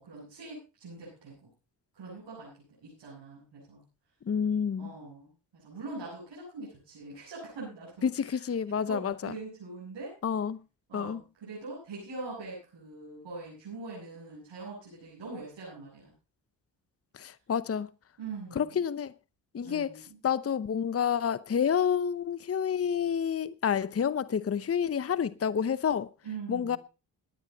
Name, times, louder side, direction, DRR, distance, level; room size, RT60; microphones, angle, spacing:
voice 1, 0.0-1.5 1.9-2.5 2.8-3.8 4.8-5.3 5.6-8.4 8.9-10.1 10.9-16.1 18.2-18.9 19.6-20.2 26.2-26.8, right 3 dB, 80° right, 7.8 m, -43 dB
voice 2, 4.3-4.9 8.0-9.4 10.2-10.6 10.9-11.2 17.1-17.9 18.5-19.1 19.5-26.1 26.5-26.8, left 7 dB, 30° left, 0.8 m, -29 dB
18.0 x 9.8 x 4.1 m
supercardioid pair, 50°, 44 cm